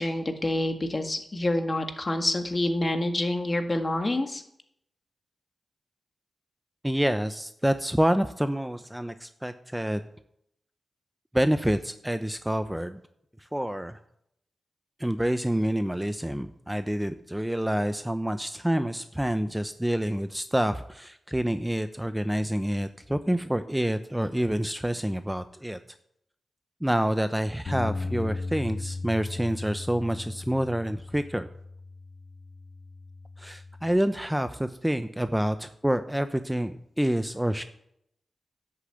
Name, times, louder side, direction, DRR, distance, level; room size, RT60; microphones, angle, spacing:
voice 1, 0.0-4.4, left 1 dB, 35° left, 6 dB, 1.7 m, -27 dB
voice 2, 6.8-10.0 11.3-13.0 13.5-14.0 15.0-25.8 26.8-31.5 33.4-37.6, equal, 5° right, 10 dB, 0.7 m, -27 dB
Bass guitar, 27.7-33.9, left 3 dB, 60° left, 1.5 m, -37 dB
10.5 x 6.9 x 7.8 m, 0.75 s
cardioid pair, 60°, 0 cm